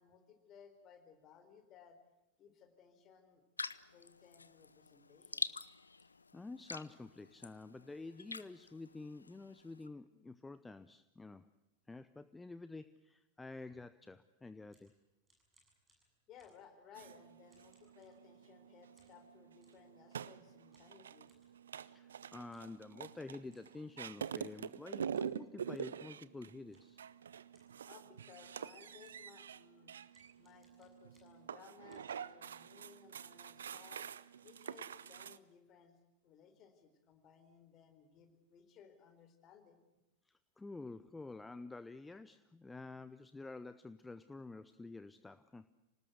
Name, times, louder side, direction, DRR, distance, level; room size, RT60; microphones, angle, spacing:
voice 1, 0.0-2.0 2.4-3.4 3.9-5.5 16.3-21.3 27.9-29.9 30.4-34.1 34.4-36.0 36.2-39.8, left 7 dB, 35° left, 8 dB, 4.1 m, -61 dB
sound 1, 3.6-9.9, left 4 dB, 75° left, 0.7 m, -46 dB
voice 2, 6.3-11.5 11.9-14.9 21.8-27.0 40.3-45.6, left 3 dB, 10° left, 14 dB, 0.8 m, -49 dB
sound 2, 14.4-18.6 19.0-19.9 20.7-21.5 22.4-22.8 23.1-23.2 23.5-24.3 25.1-25.4 25.7-26.0 26.7-27.0 27.5-27.9 28.4-28.5 28.8-29.4 30.1-31.5 31.9-32.1, right 2 dB, 15° right, 7.2 m, -74 dB
sound 3, 17.0-35.4, right 8 dB, 65° right, 0.7 m, -47 dB
26.5 x 19.0 x 8.1 m, 0.99 s
figure-of-eight pair, 90°, 0 cm